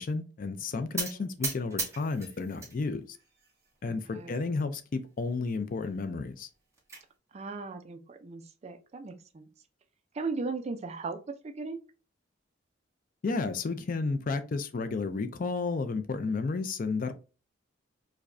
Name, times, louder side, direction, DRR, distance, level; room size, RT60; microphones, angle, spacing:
voice 1, 0.0-3.2 3.8-6.5 13.2-17.1, left 4 dB, 45° left, 0.4 m, -32 dB
voice 2, 0.9-1.3 3.9-4.3 7.3-9.5 10.1-11.8, right 4 dB, 35° right, 0.4 m, -38 dB
sound 1, 1.0-2.8 3.1-3.8 4.3-4.4 4.7-4.8 5.2-5.3 6.4-7.0, right 3 dB, 15° right, 1.2 m, -37 dB
4.8 x 2.2 x 2.5 m
head